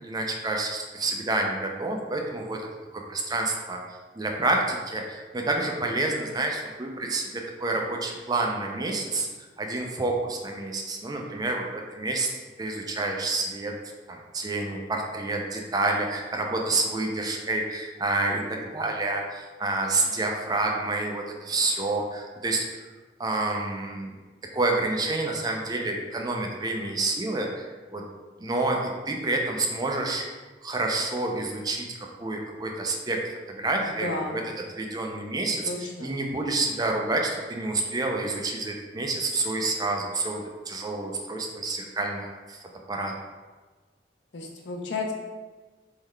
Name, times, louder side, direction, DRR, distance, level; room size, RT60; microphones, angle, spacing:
voice 1, 0.0-2.6 2.9-3.8 4.2-9.3 9.6-12.3 12.6-13.7 14.1-22.6 23.2-24.1 24.5-28.0 28.4-30.2 30.6-33.2 33.5-34.4 34.8-35.7 36.0-40.4 40.7-42.6 42.9-43.1, right 2 dB, 20° right, 1 dB, 0.4 m, -28 dB
voice 2, 34.0-34.4 35.6-36.1 44.3-45.1, left 2 dB, 75° left, 1 dB, 0.7 m, -32 dB
3.7 x 3.2 x 3.2 m, 1.3 s
head